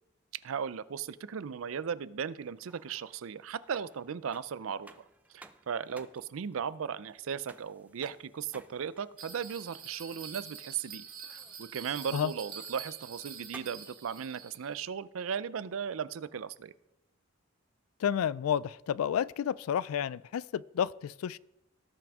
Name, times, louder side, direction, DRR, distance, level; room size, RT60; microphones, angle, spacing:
voice 1, 0.4-5.1 5.3-16.7, right 7 dB, 70° right, 17 dB, 0.4 m, -37 dB
sound 1, 2.4-14.0, right 2 dB, 5° right, 0.4 m, -58 dB
Bell, 9.2-14.7, right 7 dB, 45° right, 1.6 m, -46 dB
voice 2, 18.0-21.4, left 8 dB, 90° left, 21 dB, 0.3 m, -31 dB
18.0 x 6.0 x 3.6 m, 0.89 s
head